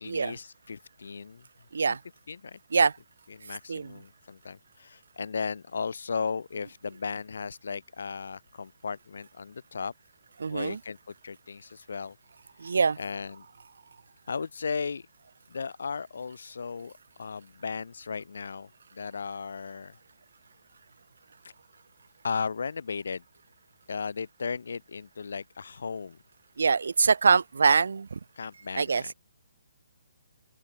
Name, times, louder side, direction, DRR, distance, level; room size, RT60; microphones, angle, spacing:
voice 1, 0.0-1.4 2.3-2.6 3.4-9.9 10.5-11.0 11.2-12.1 12.6-12.7 13.0-13.4 14.3-15.0 15.5-16.9 17.2-18.7 19.0-19.9 22.2-23.2 23.9-26.2 28.4-29.1, left 5 dB, 70° left, 0.8 m, -35 dB
voice 2, 10.4-10.8 12.6-13.0 26.6-28.2 28.7-29.1, right 5 dB, 75° right, 0.6 m, -24 dB
open air
hypercardioid pair, 170°, 0 cm